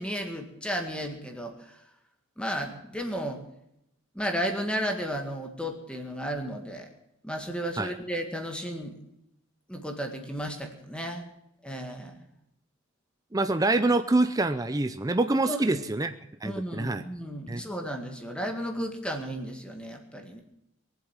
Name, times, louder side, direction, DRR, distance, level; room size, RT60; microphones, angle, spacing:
voice 1, 0.0-1.8 2.4-3.4 4.1-6.9 7.2-9.0 9.7-11.3 11.6-12.2 15.4-15.8 16.4-20.4, equal, 5° left, 4 dB, 1.9 m, -33 dB
voice 2, 13.3-16.1 16.4-17.0 17.5-17.6, right 2 dB, 15° right, 9 dB, 0.5 m, -25 dB
22.5 x 8.0 x 7.3 m, 0.81 s
head